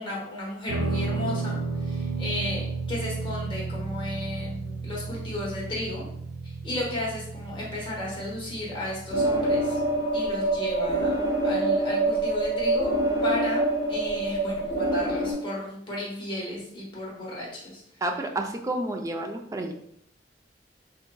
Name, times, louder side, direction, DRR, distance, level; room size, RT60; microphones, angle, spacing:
voice 1, 0.0-6.1 6.6-9.8 10.1-12.9 13.2-17.8, left 1 dB, 30° left, -5 dB, 1.1 m, -34 dB
Guitar, 0.7-10.0, right 4 dB, 90° right, 0.6 m, -33 dB
sound 1, 9.1-15.3, right 2 dB, 55° left, 1.1 m, -25 dB
voice 2, 18.0-19.7, right 1 dB, 20° right, 3 dB, 0.3 m, -30 dB
3.8 x 2.5 x 2.2 m, 0.71 s
head